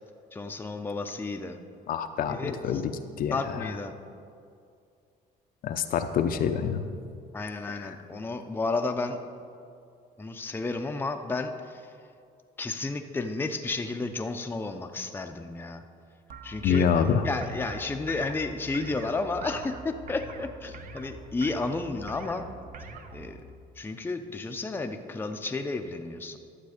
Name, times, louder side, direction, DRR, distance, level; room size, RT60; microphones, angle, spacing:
voice 1, 0.3-1.6 2.3-2.6 3.3-3.9 7.3-9.2 10.2-11.8 12.6-15.8 16.4-16.9 17.2-22.4 23.1-23.4 23.8-26.4, left 3 dB, 10° left, 5 dB, 0.6 m, -32 dB
voice 2, 1.9-2.9 3.2-3.4 5.6-6.8 7.7-7.9 16.6-17.3, left 7 dB, 60° left, 7 dB, 0.6 m, -26 dB
sound 1, 16.3-23.4, right 3 dB, 50° right, 0.8 m, -43 dB
12.0 x 7.4 x 5.0 m, 2.4 s
cardioid pair, 110°, 17 cm